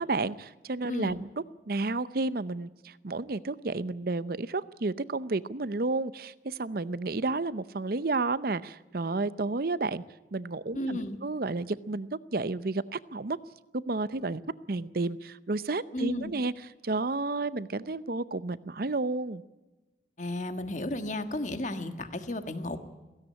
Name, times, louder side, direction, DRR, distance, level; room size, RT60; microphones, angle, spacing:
voice 1, 0.0-10.0 10.3-13.4 13.7-14.4 14.7-16.5 16.8-19.4, right 3 dB, 55° right, 16 dB, 0.7 m, -31 dB
voice 2, 10.7-11.2 15.9-16.3 20.2-22.8, left 1 dB, 40° left, 9 dB, 1.5 m, -33 dB
17.0 x 16.5 x 9.6 m, 1.1 s
head